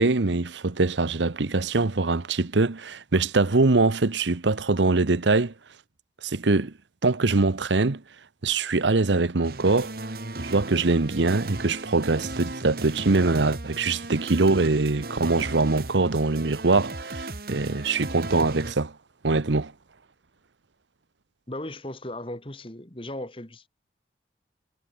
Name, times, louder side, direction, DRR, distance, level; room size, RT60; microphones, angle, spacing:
voice 1, 0.0-5.5 6.2-6.7 7.0-8.0 8.4-9.9 10.4-18.9 19.2-19.7, right 3 dB, 80° right, 1.0 m, -23 dB
sound 1, 9.4-18.7, right 2 dB, 55° right, 2.0 m, -36 dB
voice 2, 21.5-23.7, left 1 dB, 30° left, 2.2 m, -37 dB
head